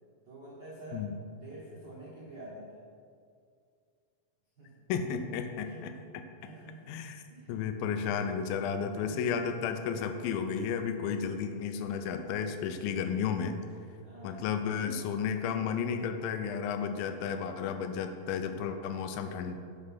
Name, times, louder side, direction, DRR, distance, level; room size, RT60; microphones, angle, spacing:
voice 1, 0.3-1.1 1.4-2.8 4.6-4.8 5.6-6.1 6.4-7.0 7.3-7.6 8.9-9.5 14.0-15.2, right 1 dB, 60° right, -8 dB, 1.1 m, -48 dB
voice 2, 4.9-6.2 6.9-7.2 7.5-13.6 14.2-19.7, left 7 dB, 90° left, 8 dB, 2.4 m, -33 dB
10.0 x 4.9 x 5.7 m, 2.3 s
omnidirectional pair, 4.1 m